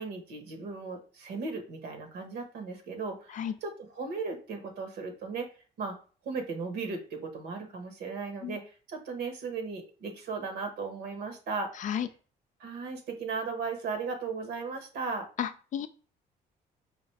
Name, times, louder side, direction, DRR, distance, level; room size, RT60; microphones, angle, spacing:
voice 1, 0.0-5.5 5.8-5.9 6.2-11.7 12.6-15.3, right 4 dB, 75° right, 5 dB, 1.3 m, -36 dB
voice 2, 15.4-15.9, left 9 dB, 50° left, 11 dB, 0.4 m, -32 dB
5.0 x 2.7 x 3.3 m, 0.37 s
cardioid pair, 110°, 17 cm